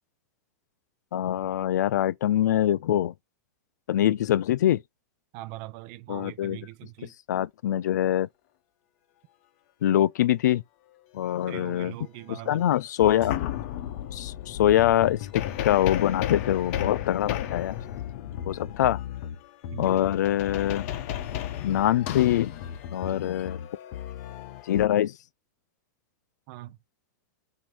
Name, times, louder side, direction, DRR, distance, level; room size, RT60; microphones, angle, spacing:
voice 1, 1.1-3.1 3.9-4.8 6.1-6.6 7.3-8.3 9.8-10.6 11.1-11.9 12.5-13.4 14.1-17.8 18.5-19.0 19.8-20.9 21.6-22.5 22.9-23.6 24.7-25.1, left 12 dB, 80° left, 0.4 m, -24 dB
voice 2, 5.3-7.1 11.5-12.7 19.7-20.1 26.5-26.8, right 17 dB, 40° right, 0.5 m, -41 dB
sound 1, 12.5-12.6 13.0-24.9, left 11 dB, 50° left, 0.7 m, -34 dB
6.0 x 2.7 x 3.3 m
supercardioid pair, 150°, 9 cm